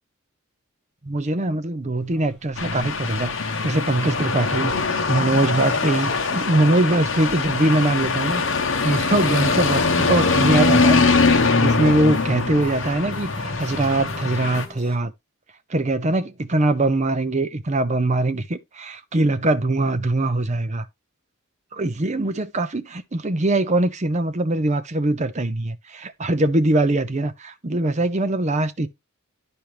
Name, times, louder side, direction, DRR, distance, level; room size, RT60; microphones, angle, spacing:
voice 1, 1.0-8.4 8.8-15.1 15.7-20.8 21.7-28.9, right 2 dB, 35° right, 0.7 m, -22 dB
sound 1, 1.9-15.0, equal, 5° left, 1.8 m, -43 dB
sound 2, 2.6-14.7, left 4 dB, 60° left, 1.0 m, -22 dB
12.0 x 4.4 x 3.3 m
head